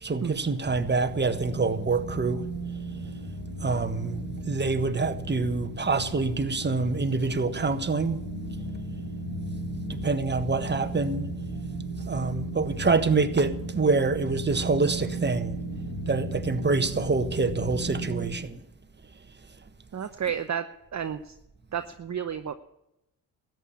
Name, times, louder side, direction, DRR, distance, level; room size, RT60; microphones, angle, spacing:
voice 1, 0.0-2.4 3.6-8.2 9.9-11.3 12.1-15.5 16.1-18.6, right 4 dB, 25° right, 1.5 m, -26 dB
sound 1, 0.6-18.3, right 2 dB, 70° left, 7.4 m, -35 dB
voice 2, 19.9-20.6 20.9-21.3 21.7-22.5, right 8 dB, 40° right, 0.9 m, -31 dB
14.0 x 9.3 x 8.4 m
supercardioid pair, 55°, 44 cm